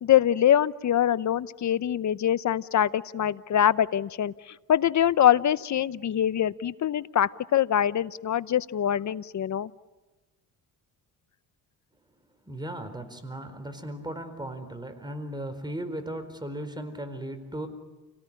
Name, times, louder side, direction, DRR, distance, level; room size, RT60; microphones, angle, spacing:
voice 1, 0.0-4.3 4.7-9.7, left 10 dB, 50° left, 17 dB, 0.9 m, -24 dB
voice 2, 12.4-17.7, right 1 dB, 10° right, 8 dB, 4.5 m, -36 dB
29.5 x 18.0 x 10.0 m, 1.2 s
cardioid pair, 75°, 36 cm